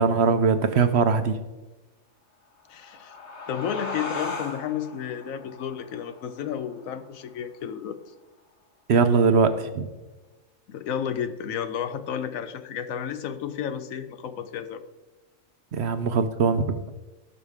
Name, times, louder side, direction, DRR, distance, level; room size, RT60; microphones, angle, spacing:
voice 1, 0.0-1.4 8.9-9.9 15.7-16.8, right 5 dB, 60° right, 9 dB, 0.9 m, -21 dB
sound 1, 2.6-7.7, left 3 dB, 55° left, 1.5 m, -38 dB
voice 2, 2.7-3.2 3.5-8.0 10.7-14.8, left 8 dB, 80° left, 10 dB, 1.1 m, -32 dB
17.0 x 6.1 x 3.6 m, 1.1 s
omnidirectional pair, 1.4 m